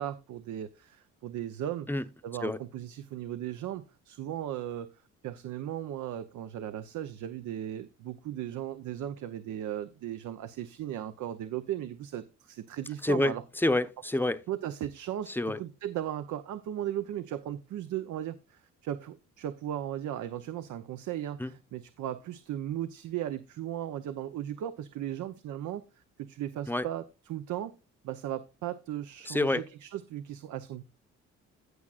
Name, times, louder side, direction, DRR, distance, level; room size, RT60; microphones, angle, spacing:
voice 1, 0.0-1.9 2.2-4.9 5.2-13.4 14.5-27.7 28.0-30.8, right 11 dB, 75° right, 0.7 m, -37 dB
voice 2, 13.0-14.4 15.3-15.6 21.4-21.5 26.7-26.9 29.2-29.6, left 2 dB, 5° left, 0.7 m, -28 dB
16.0 x 6.1 x 2.4 m
cardioid pair, 90°, 30 cm